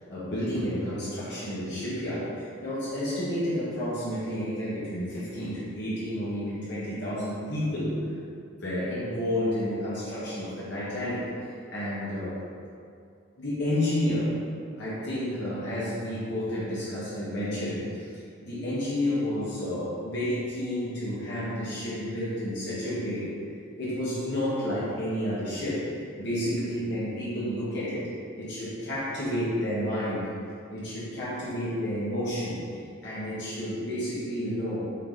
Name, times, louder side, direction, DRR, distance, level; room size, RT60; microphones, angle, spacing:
voice 1, 0.1-8.0 8.6-11.3 11.7-12.4 13.4-14.3 14.8-17.9 18.4-23.3 23.8-25.8 26.2-28.1 28.4-30.2 30.7-32.6 33.0-34.8, left 1 dB, 60° left, -9 dB, 1.6 m, -30 dB
8.2 x 4.2 x 4.0 m, 2.4 s
head